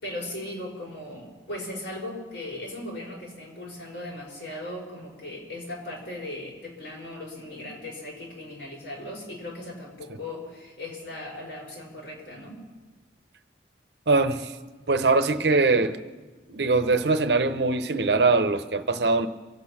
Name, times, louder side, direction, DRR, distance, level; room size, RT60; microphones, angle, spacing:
voice 1, 0.0-12.6, left 1 dB, 85° left, 5.6 m, -38 dB
voice 2, 14.1-14.6 14.9-16.0 16.5-19.3, right 3 dB, 65° right, 0.8 m, -22 dB
25.0 x 8.4 x 5.9 m
head